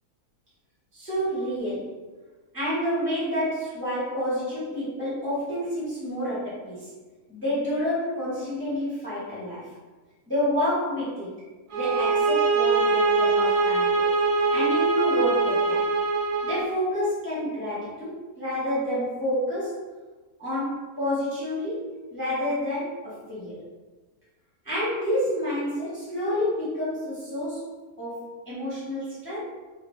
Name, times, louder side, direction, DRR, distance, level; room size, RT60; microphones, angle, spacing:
voice 1, 0.9-2.0 2.5-6.9 7.3-9.7 10.3-11.3 11.7-14.1 14.5-15.9 16.4-19.8 20.4-23.6 24.6-27.7 28.0-29.4, equal, 10° left, -10 dB, 0.8 m, -29 dB
sound 1, 11.7-16.7, right 3 dB, 75° right, 1.2 m, -23 dB
3.1 x 2.5 x 3.1 m, 1.3 s
omnidirectional pair, 1.7 m